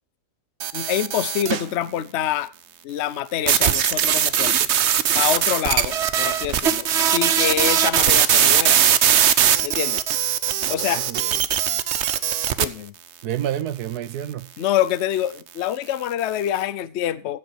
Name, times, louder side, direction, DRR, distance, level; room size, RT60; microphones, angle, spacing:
sound 1, 0.6-1.7 3.5-12.6, right 9 dB, 55° right, 0.9 m, -20 dB
voice 1, 0.7-2.5 2.8-4.6 5.1-8.8 9.6-10.0 10.7-11.0 12.6-12.9 14.6-17.4, left 11 dB, 55° left, 0.8 m, -26 dB
voice 2, 10.7-11.4 13.2-14.5, right 11 dB, 70° right, 1.3 m, -29 dB
15.5 x 8.0 x 4.6 m
omnidirectional pair, 1.8 m